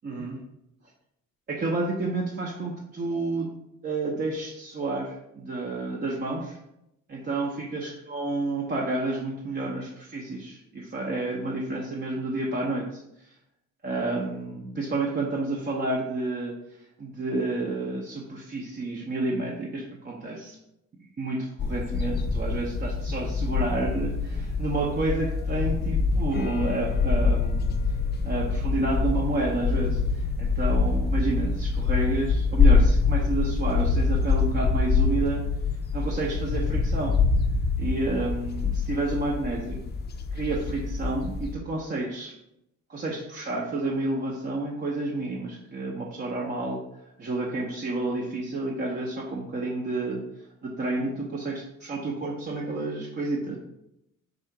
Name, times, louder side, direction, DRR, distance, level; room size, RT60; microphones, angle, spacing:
voice 1, 0.0-0.4 1.5-3.5 3.8-6.6 7.1-13.3 13.8-16.5 17.0-20.6 21.2-27.7 28.2-35.4 35.9-37.2 37.8-39.8 40.3-42.3 42.9-46.8 47.2-50.2 50.6-53.6, right 2 dB, 35° right, -3 dB, 0.7 m, -30 dB
sound 1, 21.6-41.6, left 4 dB, 35° left, 0.4 m, -25 dB
3.7 x 2.4 x 4.4 m, 0.82 s
cardioid pair, 90°, 30 cm